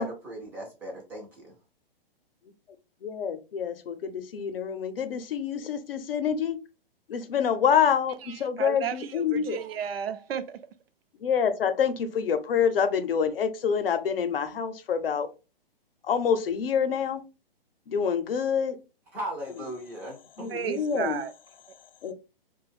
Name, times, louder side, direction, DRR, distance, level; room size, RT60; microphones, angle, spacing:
voice 1, 0.0-1.5 19.1-20.5, equal, 5° right, 0.3 m, -37 dB
voice 2, 3.0-6.6 7.1-9.6 11.2-15.3 16.0-17.2 17.9-18.8 19.6-19.7 20.4-21.2 22.0-22.1, left 7 dB, 70° left, 0.6 m, -27 dB
voice 3, 8.6-10.6 20.5-21.3, right 9 dB, 75° right, 0.5 m, -33 dB
2.5 x 2.2 x 3.3 m
hypercardioid pair, 135°, 30 cm